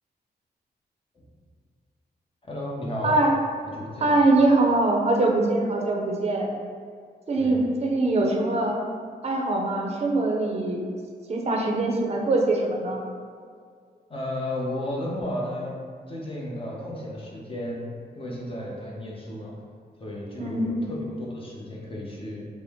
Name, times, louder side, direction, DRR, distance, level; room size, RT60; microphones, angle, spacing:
voice 1, 2.5-3.2 3.7-4.2 7.4-7.6 14.1-15.8 16.1-17.9 18.1-19.6 20.0-22.4, left 1 dB, 30° left, -4 dB, 0.8 m, -33 dB
voice 2, 4.0-6.5 7.3-8.8 9.2-10.8 11.3-13.0 20.4-20.7, right 2 dB, 40° right, 0 dB, 0.6 m, -23 dB
5.0 x 2.1 x 3.5 m, 2.1 s
wide cardioid pair, 105°, 17 cm